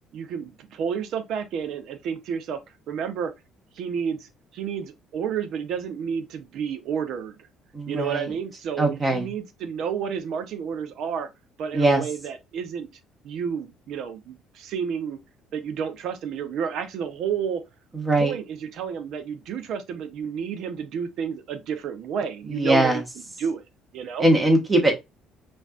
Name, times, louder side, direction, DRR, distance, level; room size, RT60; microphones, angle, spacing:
voice 1, 0.1-2.6 2.9-3.3 3.7-7.4 7.9-11.3 11.6-12.9 13.2-15.2 15.5-17.6 18.1-23.0 23.4-23.6 23.9-24.3, right 7 dB, 60° right, 0.7 m, -30 dB
voice 2, 7.7-8.3 8.8-9.3 11.7-12.0 17.9-18.3 22.5-23.0 24.2-24.9, right 2 dB, 30° right, 1.3 m, -20 dB
5.1 x 2.6 x 2.4 m
hypercardioid pair, 55°, 0 cm